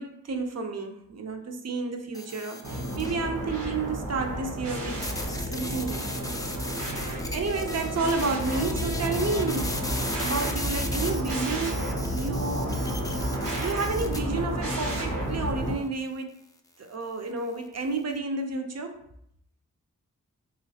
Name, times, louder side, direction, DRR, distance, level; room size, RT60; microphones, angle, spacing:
voice 1, 0.0-6.4 7.0-9.8 10.2-12.8 13.6-16.4 16.8-19.0, right 3 dB, 50° right, 5 dB, 0.6 m, -31 dB
sound 1, 2.1-3.2 5.0-14.2, left 2 dB, 10° left, 0.4 m, -36 dB
sound 2, 2.6-15.7, right 1 dB, 85° right, 0.9 m, -31 dB
3.1 x 3.0 x 2.7 m, 0.73 s
cardioid pair, 45°, 33 cm